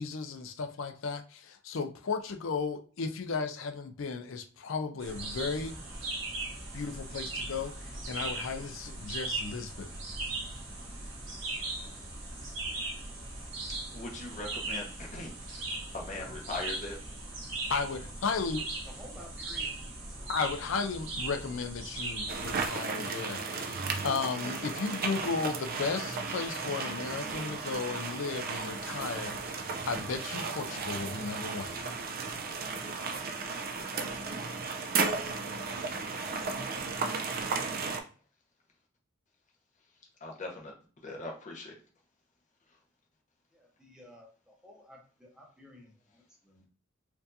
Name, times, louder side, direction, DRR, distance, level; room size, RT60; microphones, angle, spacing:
voice 1, 0.0-5.8 6.7-9.9 17.7-18.7 20.3-31.8, left 4 dB, 70° left, 0.5 m, -35 dB
sound 1, 5.0-22.7, right 2 dB, 65° right, 1.2 m, -39 dB
voice 2, 13.7-15.6 15.9-17.0 20.2-20.3 33.7-34.1 40.2-40.7 41.0-41.7, left 2 dB, 40° left, 1.0 m, -41 dB
voice 3, 18.8-20.4 21.3-21.7 43.5-46.7, left 1 dB, 5° right, 0.9 m, -53 dB
sound 2, 22.3-38.0, right 4 dB, 45° right, 0.5 m, -35 dB
4.4 x 2.6 x 2.7 m
head